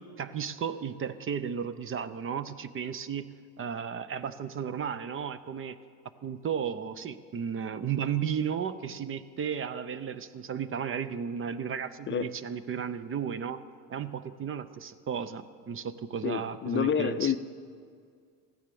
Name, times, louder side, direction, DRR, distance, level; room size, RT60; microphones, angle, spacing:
voice 1, 0.2-3.3 3.6-5.8 6.2-13.6 13.9-17.3, right 7 dB, 35° right, 14 dB, 0.6 m, -34 dB
voice 2, 16.2-17.4, left 8 dB, 35° left, 10 dB, 0.5 m, -28 dB
15.0 x 10.0 x 6.9 m, 2.1 s
cardioid pair, 105°, 35 cm